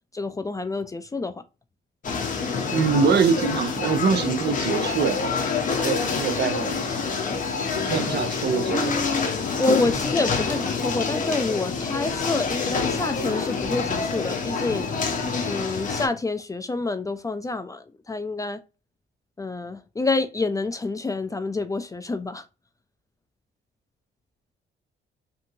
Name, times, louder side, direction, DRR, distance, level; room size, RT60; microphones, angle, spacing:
voice 1, 0.1-1.4 7.4-7.7 8.7-14.9 15.4-18.6 19.4-22.5, left 3 dB, 15° left, 0.3 m, -28 dB
sound 1, 2.0-16.1, left 5 dB, 40° left, 0.8 m, -27 dB
voice 2, 2.7-5.2 5.8-6.9 7.9-9.0, right 6 dB, 55° right, 0.6 m, -24 dB
2.7 x 2.6 x 2.7 m
cardioid pair, 90°, 20 cm